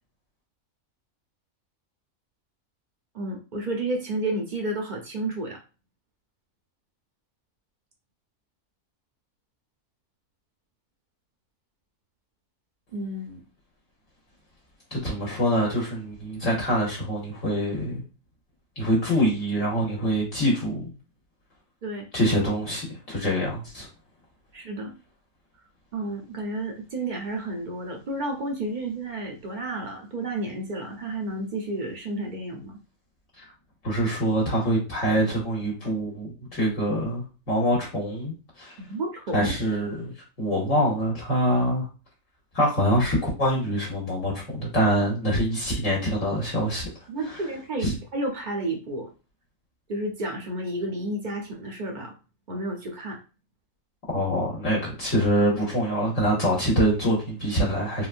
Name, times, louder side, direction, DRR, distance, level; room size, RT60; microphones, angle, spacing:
voice 1, 3.1-5.6 12.9-13.4 21.8-22.1 24.5-24.9 25.9-32.8 38.8-39.5 47.1-49.1 49.9-52.1 52.5-53.2, right 1 dB, 50° right, 0.5 m, -31 dB
voice 2, 14.9-18.0 18.8-20.9 22.1-23.9 33.8-38.7 39.3-41.8 42.5-46.9 47.8-47.9 54.1-58.1, equal, 65° left, 1.4 m, -25 dB
3.9 x 2.2 x 2.5 m
omnidirectional pair, 1.4 m